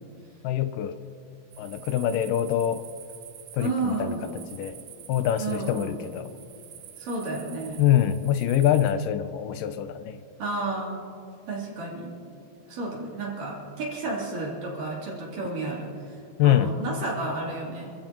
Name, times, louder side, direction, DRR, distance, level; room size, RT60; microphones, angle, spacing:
voice 1, 0.4-1.0 1.6-2.8 3.5-4.2 4.5-4.8 5.1-6.3 7.8-10.2 16.4-16.7, left 11 dB, 80° left, 11 dB, 2.1 m, -24 dB
sound 1, 1.5-8.9, right 11 dB, 85° right, 1.4 m, -47 dB
voice 2, 3.6-4.3 5.4-6.0 7.0-7.8 10.4-11.0 11.5-12.1 12.7-17.9, right 2 dB, 70° right, -5 dB, 4.9 m, -32 dB
27.5 x 14.5 x 3.0 m, 2.7 s
omnidirectional pair, 4.0 m